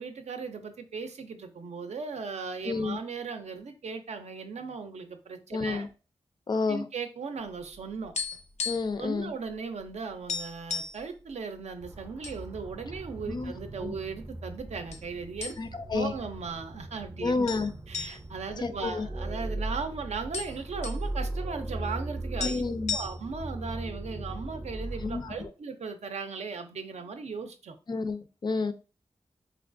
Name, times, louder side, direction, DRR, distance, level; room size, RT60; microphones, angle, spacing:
voice 1, 0.0-5.9 6.7-8.1 9.0-17.3 17.9-22.6 22.9-27.8, right 5 dB, 80° right, 0.5 m, -37 dB
voice 2, 2.7-3.0 5.5-5.9 6.5-6.9 8.7-9.3 13.3-13.5 13.8-13.9 15.6-16.1 17.2-17.7 18.0-18.2 18.5-19.1 22.4-23.0 25.0-25.3 27.9-28.7, left 4 dB, 40° left, 0.3 m, -30 dB
sound 1, 7.6-9.0 9.3-9.5 9.8-9.9 10.3-11.0 11.7-12.4 12.8-12.9 13.6-14.2 14.9-15.1 15.4-15.9 16.3-16.4 17.5-19.5 19.8-19.9 20.1-21.0 22.1-22.2 22.4-23.5, left 5 dB, 85° left, 0.5 m, -35 dB
sound 2, 11.8-25.5, right 1 dB, 25° right, 0.5 m, -38 dB
4.3 x 2.3 x 2.5 m
wide cardioid pair, 105°, 11 cm